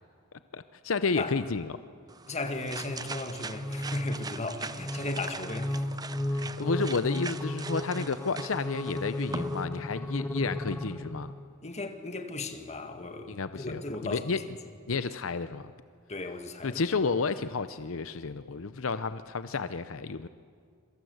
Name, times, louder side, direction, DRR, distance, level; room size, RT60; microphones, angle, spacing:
voice 1, 0.5-1.7 6.3-11.3 13.3-14.4 14.9-15.7 16.6-20.3, left 4 dB, 75° left, 0.7 m, -31 dB
sound 1, 2.1-9.6, right 4 dB, 20° right, 0.6 m, -41 dB
voice 2, 2.3-5.8 6.4-6.7 11.6-14.2 16.1-16.8, left 2 dB, 35° left, 1.9 m, -36 dB
sound 2, 3.5-11.4, left 1 dB, 10° left, 1.4 m, -35 dB
26.5 x 23.5 x 8.0 m
head